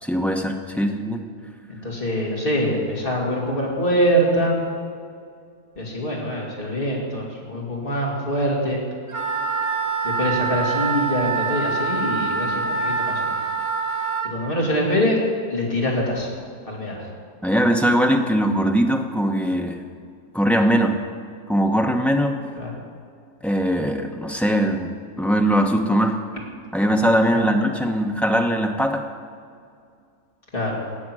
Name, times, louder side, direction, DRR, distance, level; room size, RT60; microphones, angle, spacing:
voice 1, 0.0-1.2 17.4-19.8 20.3-20.9 21.5-22.4 23.4-26.2 26.7-29.0, equal, ahead, 2 dB, 0.4 m, -21 dB
voice 2, 1.7-4.6 5.8-8.8 10.0-13.3 14.2-15.2 15.5-16.3 16.7-17.1 22.6-22.7 27.3-27.5 30.5-30.8, equal, 35° left, -3 dB, 2.6 m, -24 dB
Wind instrument woodwind instrument, 9.1-14.3, right 4 dB, 25° right, 0.8 m, -25 dB
18.5 x 6.5 x 6.2 m, 2.3 s
omnidirectional pair, 1.6 m